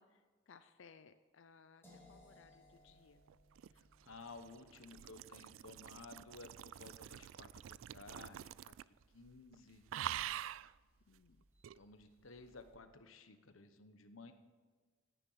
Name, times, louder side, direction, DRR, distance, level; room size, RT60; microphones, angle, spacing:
voice 1, 0.0-3.2 11.1-11.4, left 5 dB, 65° left, 10 dB, 0.5 m, -63 dB
sound 1, 1.8-7.7, left 1 dB, 10° left, 4.6 m, -67 dB
sound 2, 2.2-12.8, right 1 dB, 10° right, 1.4 m, -74 dB
sound 3, 3.3-9.0 9.3-9.5 9.9-10.7 11.6-11.8, right 11 dB, 70° right, 0.3 m, -46 dB
voice 2, 3.7-8.7 9.1-9.8 11.7-14.3, left 3 dB, 80° left, 9 dB, 1.1 m, -55 dB
17.5 x 9.9 x 5.7 m, 1.4 s
head